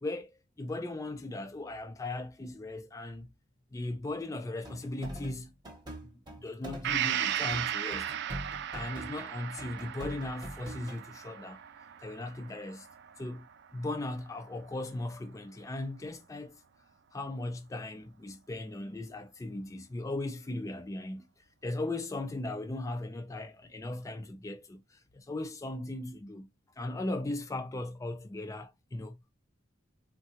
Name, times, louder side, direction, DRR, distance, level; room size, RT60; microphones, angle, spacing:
voice 1, 0.0-3.3 3.7-5.5 6.0-6.1 6.4-8.1 8.7-11.6 12.0-12.9 13.2-13.5 13.7-16.6 17.1-21.3 21.6-26.5 26.8-29.2, left 2 dB, 15° left, 0.3 m, -38 dB
sound 1, 4.6-7.0 7.3-9.3 9.6-11.0, right 1 dB, 20° right, 0.9 m, -44 dB
Gong, 6.8-14.5 14.9-15.0, right 10 dB, 60° right, 0.4 m, -36 dB
3.6 x 2.2 x 2.8 m
head